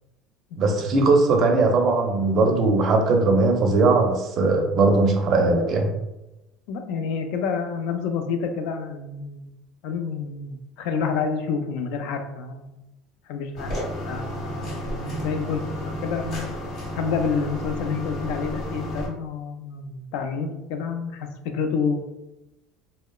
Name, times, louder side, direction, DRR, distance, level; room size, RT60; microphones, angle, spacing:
voice 1, 0.6-5.9, right 3 dB, 40° right, 3 dB, 0.4 m, -19 dB
voice 2, 6.7-9.5 9.8-12.8 13.3-13.7 14.1-16.5 16.9-22.0, left 5 dB, 70° left, 6 dB, 0.3 m, -29 dB
sound 1, 13.6-19.1, left 1 dB, 45° left, 0.7 m, -32 dB
2.8 x 2.0 x 2.2 m, 0.94 s
cardioid pair, 145°, 0 cm